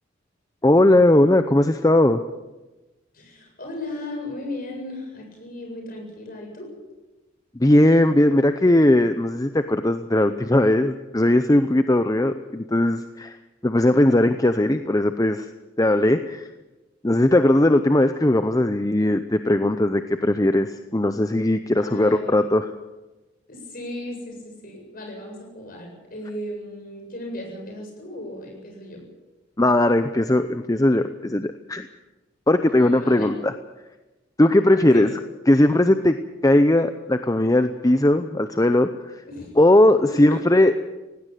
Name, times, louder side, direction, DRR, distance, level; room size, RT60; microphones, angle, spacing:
voice 1, 0.6-2.2 7.5-13.4 13.6-15.5 15.8-16.5 17.0-22.7 29.6-31.9 32.5-33.5 34.4-35.1 35.5-36.2 36.4-39.2 39.6-40.8, left 1 dB, 15° left, 9 dB, 0.6 m, -18 dB
voice 2, 3.1-6.7 21.8-22.6 23.5-29.0 32.7-33.3 34.7-35.1 39.3-39.5 40.0-40.4, left 1 dB, 45° left, 1 dB, 7.9 m, -36 dB
18.5 x 16.5 x 9.2 m, 1.1 s
head